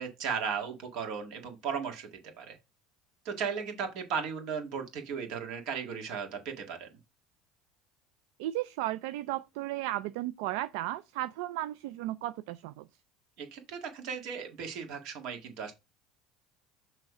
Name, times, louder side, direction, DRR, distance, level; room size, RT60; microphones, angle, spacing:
voice 1, 0.0-2.1 2.4-2.6 3.3-6.9 13.4-15.7, right 6 dB, 65° right, 1.9 m, -36 dB
voice 2, 8.4-12.9, right 15 dB, 80° right, 0.3 m, -34 dB
6.2 x 3.2 x 4.8 m
supercardioid pair, 125°, 0 cm